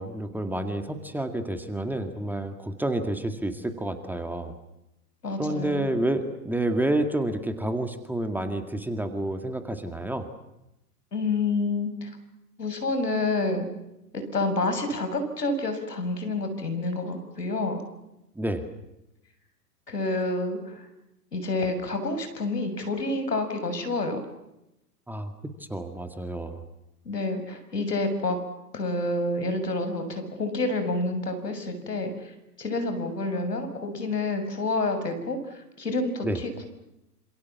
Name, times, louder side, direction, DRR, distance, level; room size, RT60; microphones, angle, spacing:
voice 1, 0.0-4.5 5.4-10.3 18.4-18.6 25.1-25.3 25.7-26.6 36.2-36.4, right 1 dB, 5° right, 7 dB, 2.0 m, -29 dB
voice 2, 5.2-5.9 11.1-12.1 12.6-13.7 14.1-17.8 19.9-20.7 21.3-24.2 27.0-28.4 28.7-32.3 32.6-36.7, left 2 dB, 80° left, 8 dB, 6.7 m, -28 dB
28.0 x 27.0 x 7.3 m, 0.89 s
figure-of-eight pair, 110°, 48 cm